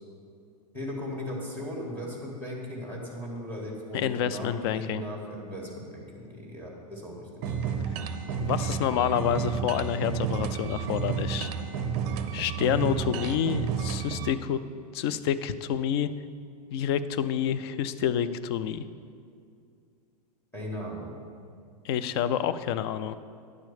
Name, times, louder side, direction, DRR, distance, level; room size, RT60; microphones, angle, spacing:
voice 1, 0.7-7.6 20.5-21.1, left 1 dB, 10° left, -3 dB, 1.6 m, -37 dB
voice 2, 3.9-5.0 8.4-11.5 12.3-14.6 14.9-16.1 16.7-18.8 21.8-23.2, left 9 dB, 40° left, 13 dB, 0.4 m, -28 dB
sound 1, 7.4-14.3, right 7 dB, 35° right, 0.6 m, -31 dB
9.7 x 4.4 x 6.9 m, 2.3 s
figure-of-eight pair, 100°, 21 cm